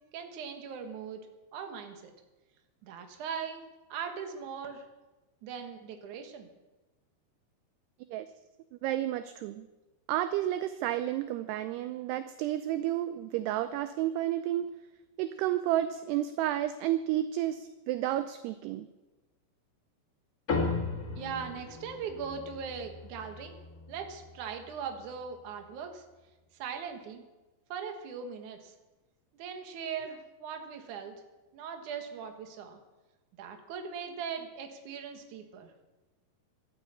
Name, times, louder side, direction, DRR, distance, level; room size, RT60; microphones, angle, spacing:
voice 1, 0.1-1.2 1.5-2.1 2.8-3.6 3.9-4.8 5.4-6.5 21.2-23.6 23.9-26.0 26.6-27.2 27.7-28.7 29.4-31.1 31.5-32.8 33.4-35.7, right 6 dB, 60° right, 5 dB, 2.3 m, -40 dB
voice 2, 8.8-9.7 10.1-14.7 15.2-18.9, right 13 dB, 80° right, 11 dB, 2.4 m, -31 dB
sound 1, 20.5-25.2, left 3 dB, 60° left, 0.9 m, -37 dB
12.5 x 9.0 x 8.4 m, 1.1 s
omnidirectional pair, 5.1 m